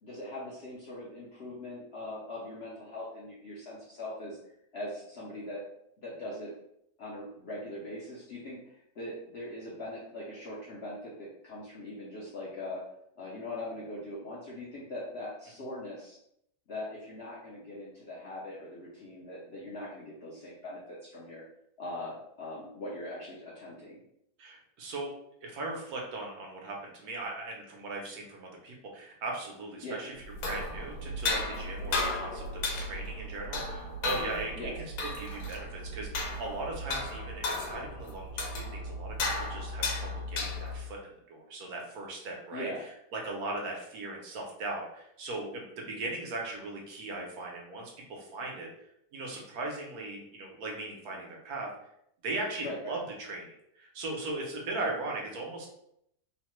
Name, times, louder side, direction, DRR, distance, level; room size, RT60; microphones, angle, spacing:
voice 1, 0.0-4.4 4.7-5.6 6.0-6.5 7.0-12.9 13.2-16.2 16.7-21.4 21.8-24.0 29.8-30.0 34.6-34.8 42.5-42.8 51.1-51.3 52.6-52.9 54.7-54.9, left 1 dB, 60° left, -6 dB, 0.7 m, -41 dB
voice 2, 24.4-25.1 25.4-30.1 30.4-34.7 35.0-42.7 43.1-48.7 49.1-51.7 52.2-55.7, right 2 dB, 75° right, -1 dB, 1.1 m, -38 dB
sound 1, 30.2-40.9, left 2 dB, 85° left, 1.2 m, -35 dB
3.0 x 2.1 x 3.0 m, 0.75 s
omnidirectional pair, 1.7 m